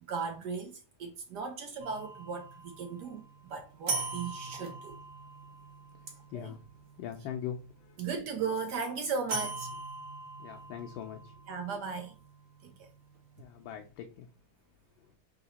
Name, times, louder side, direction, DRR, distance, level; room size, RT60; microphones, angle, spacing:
voice 1, 0.0-3.2 3.5-5.0 6.3-6.5 8.0-9.7 11.5-12.1 12.6-12.9, right 5 dB, 75° right, 0.9 m, -37 dB
sound 1, 1.8-7.9 9.3-13.3, right 3 dB, 40° right, 1.0 m, -41 dB
voice 2, 7.0-7.9 10.4-11.3 13.4-14.3, left 9 dB, 75° left, 1.2 m, -41 dB
3.8 x 2.8 x 4.0 m
omnidirectional pair, 2.4 m